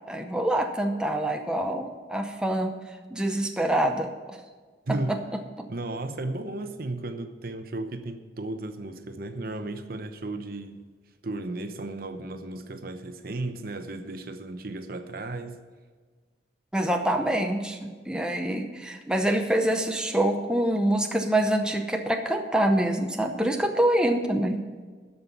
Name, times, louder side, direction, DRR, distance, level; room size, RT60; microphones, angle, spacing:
voice 1, 0.1-2.7 3.1-4.1 5.1-5.2 16.7-24.6, right 1 dB, 5° right, 3 dB, 0.7 m, -25 dB
voice 2, 4.9-5.2 5.7-10.9 11.2-15.6, right 2 dB, 55° right, 8 dB, 0.8 m, -34 dB
13.0 x 5.6 x 8.2 m, 1.5 s
head